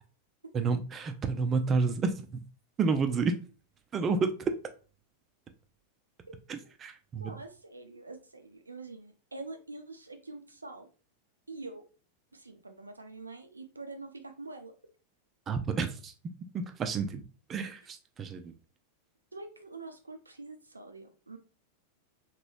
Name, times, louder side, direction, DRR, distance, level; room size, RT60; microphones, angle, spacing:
voice 1, 0.5-2.4 2.8-3.3 3.9-4.5 6.5-7.3 15.5-16.1 16.5-17.2 17.5-18.5, right 4 dB, 25° right, 0.4 m, -30 dB
voice 2, 6.3-6.7 7.2-10.9 11.5-11.8 12.3-14.7 19.3-21.4, right 3 dB, 80° right, 0.5 m, -45 dB
3.0 x 3.0 x 2.5 m
figure-of-eight pair, 90°, 0 cm